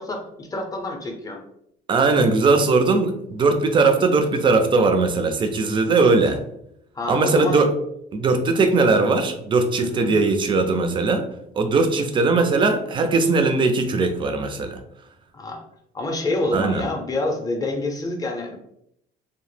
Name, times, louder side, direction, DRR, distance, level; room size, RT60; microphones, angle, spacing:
voice 1, 0.0-1.4 6.9-7.6 9.7-10.1 15.3-15.6 15.9-18.6, left 2 dB, 20° left, 2 dB, 0.5 m, -27 dB
voice 2, 1.9-6.4 7.1-7.7 8.1-11.2 11.6-14.8 16.5-16.8, right 3 dB, 30° right, 6 dB, 0.4 m, -19 dB
2.0 x 2.0 x 3.1 m, 0.74 s
cardioid pair, 110°, 17 cm